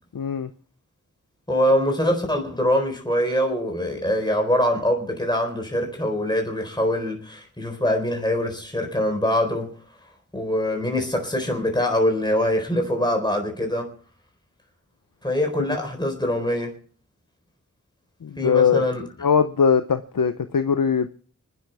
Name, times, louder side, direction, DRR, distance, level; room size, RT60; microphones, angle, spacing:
voice 1, 0.1-0.5 18.2-18.8 19.2-21.1, left 6 dB, 85° left, 0.7 m, -20 dB
voice 2, 1.5-9.7 10.3-13.9 15.2-16.7 18.4-19.0, left 1 dB, 15° left, 4.1 m, -23 dB
28.5 x 10.5 x 3.4 m
wide cardioid pair, 40°, 33 cm